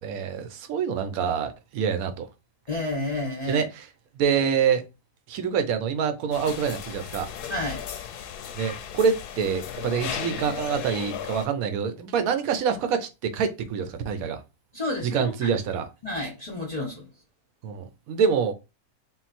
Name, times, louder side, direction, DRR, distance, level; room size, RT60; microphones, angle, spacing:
voice 1, 0.0-2.3 3.5-3.9 4.1-4.8 5.3-7.3 8.5-14.4 15.0-15.9 17.6-18.5, right 6 dB, 70° right, 1.1 m, -26 dB
voice 2, 2.7-3.6 7.5-7.8 14.7-15.5 16.0-17.0, left 2 dB, 30° left, 0.9 m, -30 dB
sound 1, 6.3-11.5, left 8 dB, 90° left, 1.2 m, -36 dB
3.8 x 2.3 x 4.1 m
omnidirectional pair, 1.6 m